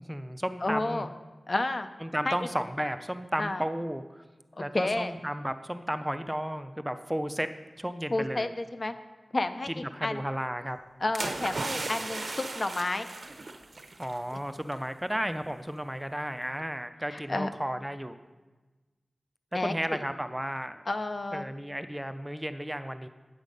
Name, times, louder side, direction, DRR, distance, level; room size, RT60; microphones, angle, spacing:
voice 1, 0.1-1.1 2.0-4.2 4.6-7.5 7.8-8.5 9.7-10.8 14.0-18.2 19.5-20.8 21.3-23.1, equal, 10° right, 10 dB, 0.4 m, -33 dB
voice 2, 0.6-1.1 1.5-1.9 2.3-2.4 3.4-3.6 4.6-5.1 8.1-8.9 9.3-9.7 10.0-10.2 11.0-13.1 17.1-17.5 19.5-20.0 20.9-21.4, left 2 dB, 50° left, 9 dB, 0.6 m, -30 dB
sound 1, 11.1-14.2 14.5-14.7, right 3 dB, 70° right, 0.8 m, -36 dB
9.9 x 7.3 x 5.2 m, 1.2 s
wide cardioid pair, 75°, 0 cm